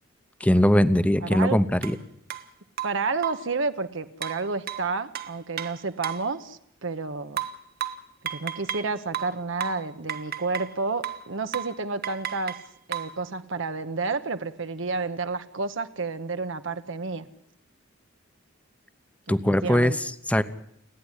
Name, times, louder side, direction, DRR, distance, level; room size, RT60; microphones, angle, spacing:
voice 1, 0.4-2.0 19.3-19.9 20.3-20.4, left 1 dB, 5° left, 13 dB, 0.8 m, -20 dB
voice 2, 1.2-1.6 2.8-7.4 8.3-12.6 12.9-17.3 19.3-20.0, right 4 dB, 65° right, 9 dB, 1.0 m, -30 dB
sound 1, 1.8-2.0 2.3-2.4 2.8-3.5 4.2-6.3 7.4-8.9 9.1-10.8 11.0-11.3 11.5-11.8 12.0-13.2, right 10 dB, 50° right, 1.3 m, -33 dB
29.5 x 10.0 x 9.9 m, 0.72 s
head